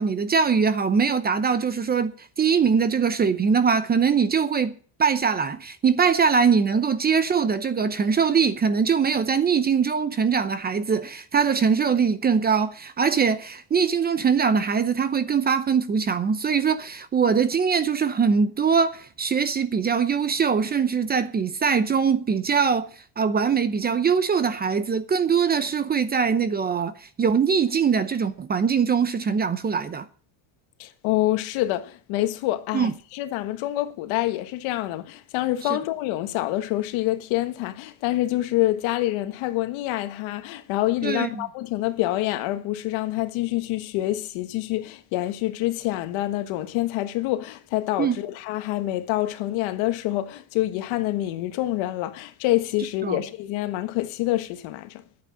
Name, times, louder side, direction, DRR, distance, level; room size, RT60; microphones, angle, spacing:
voice 1, 0.0-22.9 23.2-30.0 32.7-32.9 41.0-41.4 48.0-48.2 53.0-53.2, right 6 dB, 20° right, 0.7 m, -22 dB
voice 2, 30.8-55.0, left 15 dB, 75° left, 1.5 m, -26 dB
11.0 x 8.8 x 7.5 m
cardioid pair, 160°, 48 cm